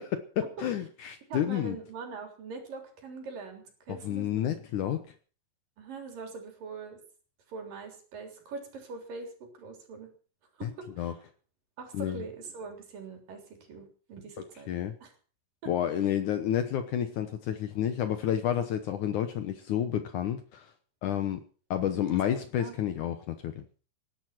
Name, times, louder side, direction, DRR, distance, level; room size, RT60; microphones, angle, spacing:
voice 1, 0.0-1.8 3.9-5.0 10.6-10.7 11.0-11.1 11.9-12.2 14.7-14.9 15.7-20.7 21.0-21.4 21.7-23.7, left 10 dB, 75° left, 9 dB, 1.8 m, -30 dB
voice 2, 1.3-4.4 5.8-7.0 7.5-10.1 10.6-11.1 11.8-14.7 15.0-15.1 15.6-15.7 22.1-22.2 22.6-22.8, right 4 dB, 55° right, 4 dB, 4.9 m, -42 dB
18.5 x 11.5 x 5.9 m, 0.40 s
omnidirectional pair, 5.0 m